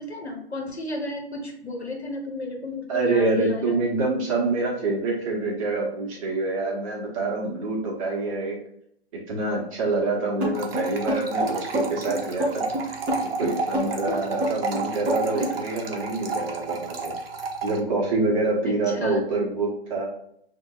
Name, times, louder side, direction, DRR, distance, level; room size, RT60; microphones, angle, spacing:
voice 1, 0.0-3.8 15.3-15.5 18.6-19.2, left 3 dB, 85° left, 1 dB, 1.3 m, -33 dB
voice 2, 2.9-8.6 9.3-12.7 13.2-17.1 17.6-20.1, right 3 dB, 30° right, -1 dB, 1.2 m, -26 dB
sound 1, 10.4-15.6, equal, 5° right, 0.4 m, -27 dB
sound 2, 10.5-17.8, right 4 dB, 65° right, 0.8 m, -32 dB
5.7 x 2.9 x 2.4 m, 0.70 s
figure-of-eight pair, 125°, 32 cm